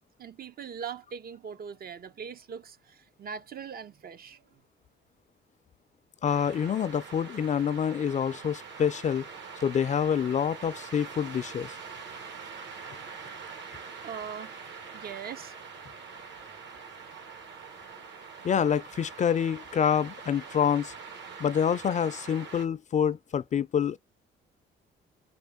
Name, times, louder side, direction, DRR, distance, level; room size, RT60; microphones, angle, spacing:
voice 1, 0.2-4.6 14.0-14.6 14.9-15.5, right 7 dB, 50° right, 0.6 m, -41 dB
voice 2, 6.2-9.2 9.6-11.7 18.4-20.9 21.4-24.0, left 8 dB, 40° left, 0.4 m, -27 dB
sound 1, 6.2-22.7, right 5 dB, 65° right, 1.6 m, -44 dB
4.4 x 2.1 x 3.5 m
cardioid pair, 90°, 20 cm